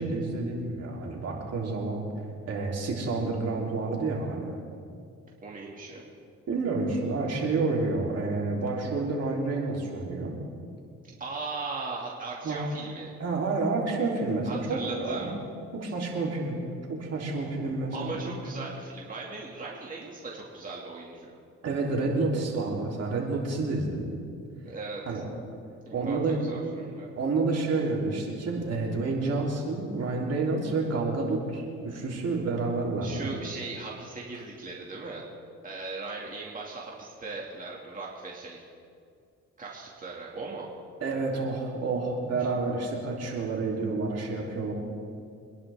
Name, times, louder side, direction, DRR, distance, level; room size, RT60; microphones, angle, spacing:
voice 1, 0.0-2.0 2.5-4.6 6.5-10.3 12.4-12.7 13.2-15.3 15.7-18.3 21.6-24.3 25.1-25.3 25.9-26.4 27.2-33.3 41.0-44.7, right 3 dB, 55° right, -2 dB, 3.5 m, -29 dB
voice 2, 5.4-6.0 11.2-13.1 14.4-15.3 15.8-15.9 17.9-21.3 24.6-25.2 25.9-27.1 33.0-35.3 35.6-38.7 39.6-40.7, right 3 dB, 30° right, -4 dB, 2.3 m, -38 dB
25.5 x 11.0 x 3.6 m, 2.3 s
cardioid pair, 90°, 30 cm